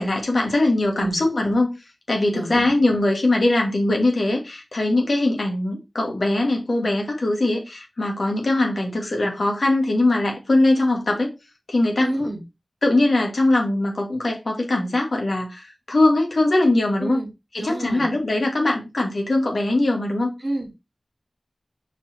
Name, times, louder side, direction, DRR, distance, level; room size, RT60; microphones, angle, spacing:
voice 1, 0.0-1.7 2.1-11.3 11.7-12.3 12.8-17.2 17.5-20.3, left 2 dB, 70° left, 1 dB, 2.5 m, -21 dB
voice 2, 2.3-2.7 12.0-12.4 17.0-17.3 17.6-18.1 20.4-20.9, right 2 dB, 40° right, 3 dB, 1.8 m, -30 dB
5.4 x 4.9 x 4.5 m, 0.25 s
wide cardioid pair, 70°, 0 cm